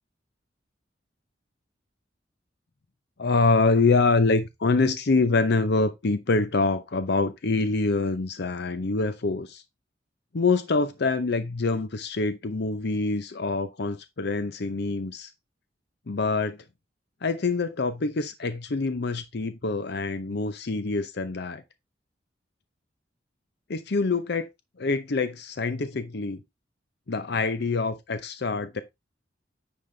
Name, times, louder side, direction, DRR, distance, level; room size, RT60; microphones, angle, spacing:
voice 1, 3.2-9.6 10.3-15.3 16.1-16.6 17.2-21.6 23.7-24.5 24.8-26.4 27.1-28.8, left 3 dB, 65° left, 0.7 m, -25 dB
9.8 x 5.2 x 3.3 m
head